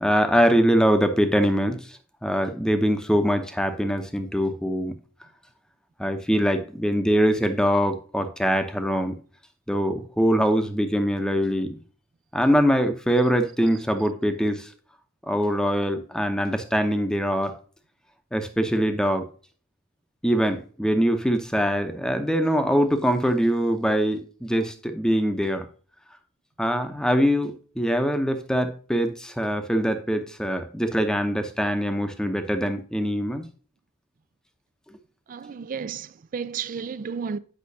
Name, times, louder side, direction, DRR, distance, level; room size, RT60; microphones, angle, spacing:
voice 1, 0.0-4.9 6.0-9.2 9.7-11.8 12.3-14.7 15.3-17.5 18.3-19.2 20.2-25.6 26.6-33.4, equal, 5° left, 0.7 m, -23 dB
voice 2, 35.3-37.4, right 6 dB, 40° right, 0.4 m, -32 dB
8.4 x 5.6 x 2.7 m
head